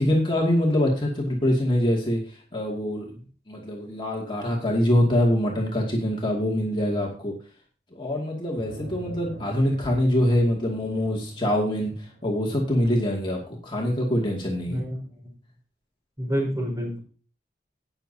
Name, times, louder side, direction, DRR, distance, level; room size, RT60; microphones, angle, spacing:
voice 1, 0.0-3.1 3.5-7.3 7.9-14.8, left 1 dB, 30° left, -2 dB, 2.3 m, -24 dB
sound 1, 8.6-13.4, right 2 dB, 80° right, 4.7 m, -42 dB
voice 2, 14.7-15.0 16.2-17.0, equal, 20° right, -2 dB, 5.2 m, -27 dB
18.5 x 7.1 x 2.8 m, 0.40 s
head